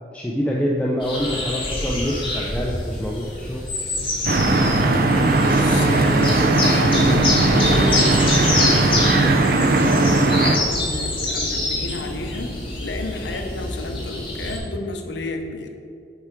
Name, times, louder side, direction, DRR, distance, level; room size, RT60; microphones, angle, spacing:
voice 1, 0.1-3.6, equal, 5° left, -3 dB, 0.4 m, -25 dB
sound 1, 1.0-14.6, left 2 dB, 30° left, 1.3 m, -26 dB
sound 2, 4.2-10.6, right 2 dB, 50° right, 0.5 m, -18 dB
voice 2, 5.4-15.7, left 2 dB, 75° left, 4 dB, 0.7 m, -31 dB
6.7 x 4.8 x 4.4 m, 2.5 s
head